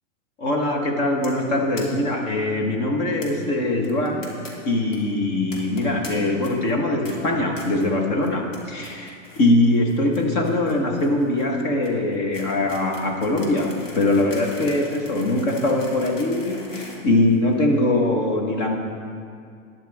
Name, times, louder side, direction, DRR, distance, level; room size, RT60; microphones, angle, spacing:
voice 1, 0.4-4.2 4.6-18.8, left 2 dB, 35° left, 2 dB, 1.4 m, -22 dB
sound 1, 1.2-1.4 1.7-1.8 2.1-2.2 2.4-2.5 3.2-3.3 3.8-4.5 4.8-5.0 5.5-6.1 6.4-6.7 7.0-7.1 7.6-7.9 8.2-8.6 8.8-9.4 9.7-17.8, left 2 dB, 80° left, 3.0 m, -41 dB
13.0 x 10.5 x 3.6 m, 2.3 s
supercardioid pair, 155°, 38 cm